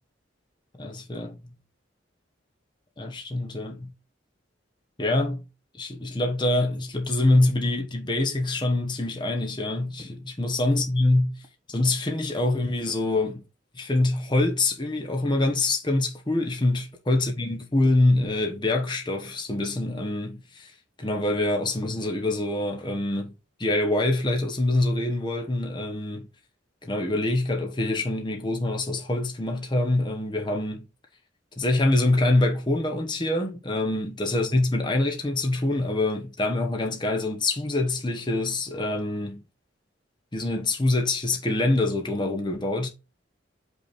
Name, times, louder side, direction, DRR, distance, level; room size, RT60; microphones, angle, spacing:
voice 1, 0.8-1.5 3.0-3.9 5.0-5.4 5.8-11.4 11.7-13.4 13.7-20.7 21.0-23.3 23.6-26.3 26.8-30.9 31.6-39.4 40.3-42.9, left 2 dB, 25° left, 1.0 m, -25 dB
5.5 x 4.1 x 4.2 m
head